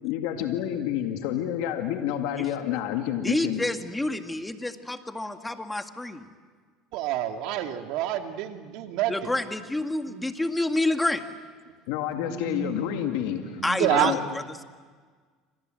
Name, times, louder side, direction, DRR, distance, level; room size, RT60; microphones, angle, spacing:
voice 1, 0.0-3.6 11.9-13.6 13.9-14.2, left 11 dB, 80° left, 4 dB, 2.1 m, -29 dB
voice 2, 3.2-6.3 9.1-11.3 13.6-14.6, left 2 dB, 10° left, 6 dB, 2.0 m, -28 dB
voice 3, 6.9-9.1 10.1-10.2 12.1-14.1, right 11 dB, 70° right, 5 dB, 2.3 m, -29 dB
29.5 x 25.5 x 7.8 m, 1.5 s
supercardioid pair, 100°, 0 cm